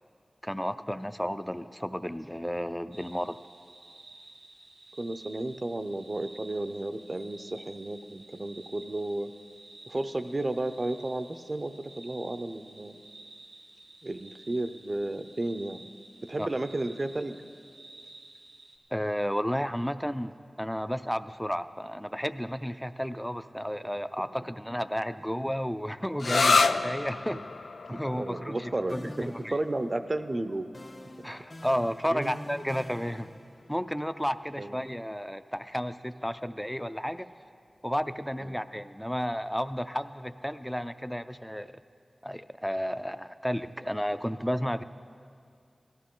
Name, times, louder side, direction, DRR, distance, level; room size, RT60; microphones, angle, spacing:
voice 1, 0.4-3.4 16.4-16.5 18.9-20.3 20.6-27.4 27.9-29.6 31.2-33.3 33.7-37.3 37.8-41.7 42.2-44.8, equal, 5° left, 12 dB, 0.4 m, -32 dB
sound 1, 2.9-18.8, right 2 dB, 90° right, 1.9 m, -52 dB
voice 2, 5.0-9.3 9.9-13.0 14.0-15.9 16.2-17.4 24.2-24.3 27.3-27.4 27.9-30.7 31.2-31.3 32.1-32.5 34.6-34.7 38.4-38.6, right 2 dB, 45° right, 10 dB, 0.6 m, -33 dB
sound 2, 26.2-33.6, left 4 dB, 90° left, 0.3 m, -31 dB
sound 3, 28.9-30.3 30.7-33.9, left 2 dB, 50° left, 1.2 m, -48 dB
18.0 x 14.0 x 3.8 m, 2.4 s
wide cardioid pair, 55°, 0 cm